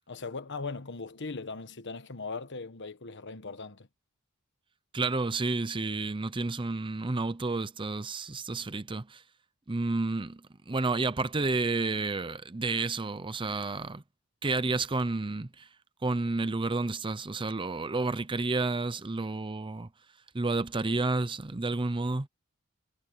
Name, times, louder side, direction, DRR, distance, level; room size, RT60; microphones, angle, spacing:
voice 1, 0.1-3.9, left 4 dB, 55° left, 1.3 m, -39 dB
voice 2, 4.9-9.2 9.7-10.4 10.7-14.0 14.4-15.7 16.0-19.9 20.3-22.3, right 3 dB, 25° right, 0.7 m, -30 dB
head